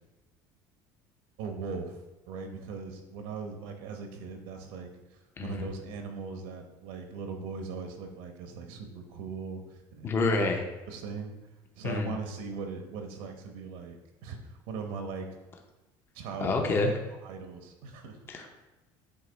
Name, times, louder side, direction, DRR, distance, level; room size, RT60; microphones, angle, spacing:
voice 1, 1.4-2.0 2.3-10.3 10.9-11.4 11.7-14.0 14.2-15.3 16.1-16.7 17.2-18.2, right 5 dB, 80° right, 4 dB, 1.0 m, -39 dB
voice 2, 10.0-10.6 11.8-12.1 16.4-16.9 18.3-18.5, left 3 dB, 25° left, 3 dB, 0.6 m, -27 dB
8.1 x 2.9 x 4.0 m, 1.1 s
cardioid pair, 160°, 10 cm